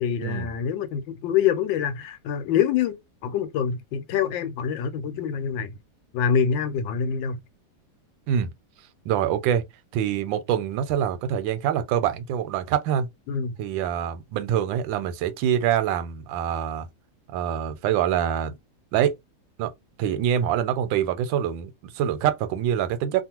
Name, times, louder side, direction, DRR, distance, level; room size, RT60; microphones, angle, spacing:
voice 1, 0.0-3.0 3.2-5.8 6.1-7.4 13.3-13.5, left 8 dB, 85° left, 1.4 m, -25 dB
voice 2, 9.0-9.6 9.9-13.1 13.6-16.9 17.3-18.5 18.9-19.2 19.6-19.7 20.0-23.2, right 9 dB, 90° right, 1.3 m, -25 dB
3.0 x 2.4 x 2.8 m
omnidirectional pair, 2.0 m